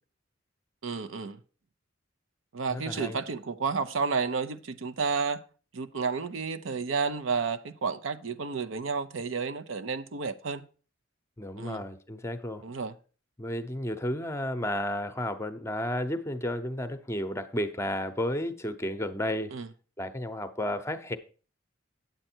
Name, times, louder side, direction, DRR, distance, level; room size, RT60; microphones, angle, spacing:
voice 1, 0.8-1.4 2.5-5.4 5.7-10.6 11.6-11.8 12.6-12.9 19.5-19.7, right 5 dB, 80° right, 0.7 m, -31 dB
voice 2, 2.7-3.2 11.4-12.6 13.4-19.5 20.0-21.2, left 1 dB, 15° left, 0.7 m, -32 dB
9.0 x 7.7 x 4.4 m
head